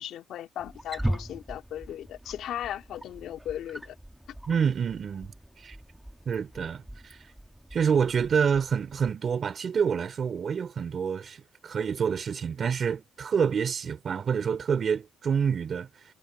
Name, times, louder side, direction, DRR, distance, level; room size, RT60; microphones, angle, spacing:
voice 1, 0.0-4.0, left 11 dB, 70° left, 2.2 m, -37 dB
Wild animals, 0.6-9.1, right 1 dB, 5° right, 2.0 m, -39 dB
voice 2, 4.5-5.3 5.6-5.7 6.2-7.2 7.7-15.9, right 6 dB, 45° right, 3.0 m, -27 dB
cardioid pair, 95°, 0 cm